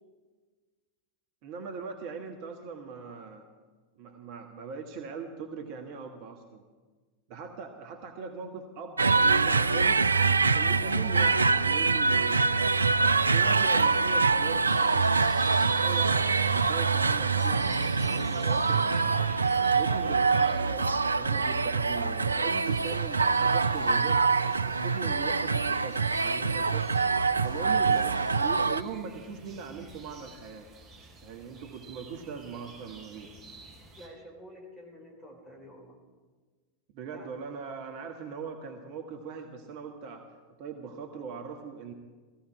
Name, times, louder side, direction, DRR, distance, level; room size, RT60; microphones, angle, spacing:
voice 1, 1.4-3.4 4.0-6.6 7.3-10.0 10.5-15.1 15.5-19.3 19.7-24.2 24.5-26.9 27.4-30.7 31.2-33.3 36.9-40.3 40.6-41.9, right 5 dB, 45° right, 4 dB, 1.4 m, -40 dB
sound 1, 9.0-28.8, right 4 dB, 80° right, 0.3 m, -25 dB
sound 2, 14.2-34.1, right 3 dB, 25° right, 4.4 m, -51 dB
voice 2, 27.4-27.7 34.0-36.0 37.1-37.3, equal, 10° left, 0 dB, 4.2 m, -48 dB
17.0 x 15.0 x 4.7 m, 1.4 s
figure-of-eight pair, 90°, 0 cm